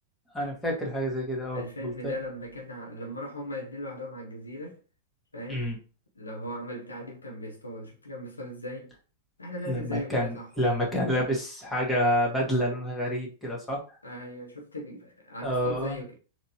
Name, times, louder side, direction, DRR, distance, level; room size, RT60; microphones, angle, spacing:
voice 1, 0.3-2.2 5.5-5.8 9.7-13.8 15.4-16.0, equal, 5° left, 1.6 m, -28 dB
voice 2, 1.5-4.8 5.3-5.7 6.2-8.9 9.4-10.5 14.0-16.1, left 1 dB, 90° left, 0.9 m, -38 dB
4.2 x 3.0 x 2.9 m
figure-of-eight pair, 100°, 0 cm